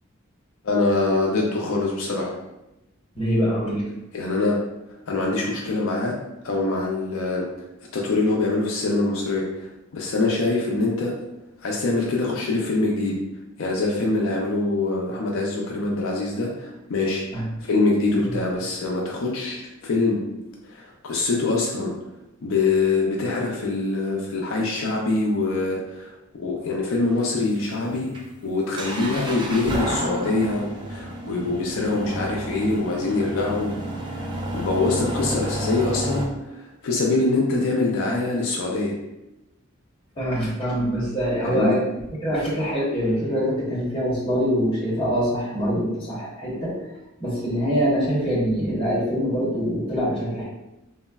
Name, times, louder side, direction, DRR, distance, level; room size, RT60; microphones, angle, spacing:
voice 1, 0.6-2.3 4.1-4.6 5.1-6.1 6.4-7.4 7.9-11.1 11.6-13.1 13.6-17.2 17.6-20.2 20.7-21.9 22.4-26.1 26.4-28.1 28.4-33.7 34.1-38.9 41.4-41.8, left 3 dB, 75° left, -2 dB, 0.4 m, -24 dB
voice 2, 3.1-3.9 17.3-17.5 18.2-18.4 40.2-46.8 47.2-50.4, equal, 25° left, -8 dB, 0.9 m, -24 dB
sound 1, 27.1-36.2, right 1 dB, 20° right, 0.3 m, -31 dB
3.3 x 2.0 x 2.2 m, 0.94 s
head